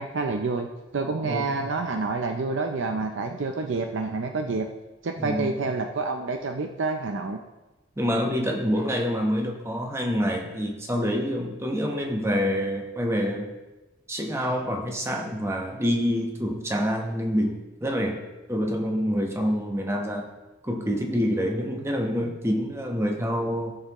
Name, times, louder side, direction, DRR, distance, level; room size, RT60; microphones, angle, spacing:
voice 1, 0.0-4.7 5.0-7.4, right 3 dB, 65° right, 5 dB, 0.5 m, -28 dB
voice 2, 1.2-1.7 5.2-5.6 8.0-13.5 14.1-18.2 18.5-20.3 20.6-23.8, equal, 15° right, 2 dB, 1.0 m, -27 dB
15.0 x 6.6 x 3.0 m, 1.1 s
head